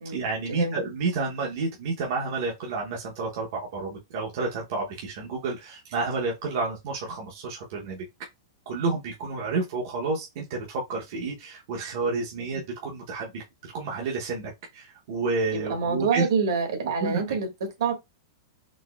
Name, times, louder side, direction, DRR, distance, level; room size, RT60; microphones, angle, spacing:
voice 1, 0.0-8.0 8.7-13.4 13.7-16.3 17.0-17.2, right 3 dB, 40° right, 0.7 m, -30 dB
voice 2, 15.5-17.9, right 5 dB, 75° right, 1.3 m, -26 dB
4.0 x 2.6 x 2.2 m
supercardioid pair, 180°, 2 cm